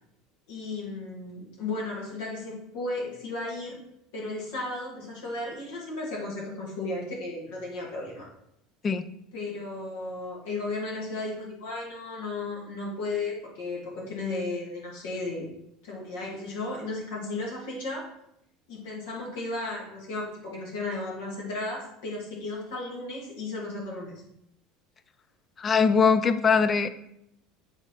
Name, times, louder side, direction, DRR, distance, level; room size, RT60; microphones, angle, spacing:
voice 1, 0.5-3.8 4.1-8.3 9.3-15.5 15.8-18.1 18.7-24.1, left 2 dB, 75° left, -3 dB, 2.7 m, -34 dB
voice 2, 25.6-26.9, left 5 dB, 30° left, 12 dB, 0.6 m, -21 dB
8.0 x 4.0 x 4.0 m, 0.77 s
hypercardioid pair, 85°, 0 cm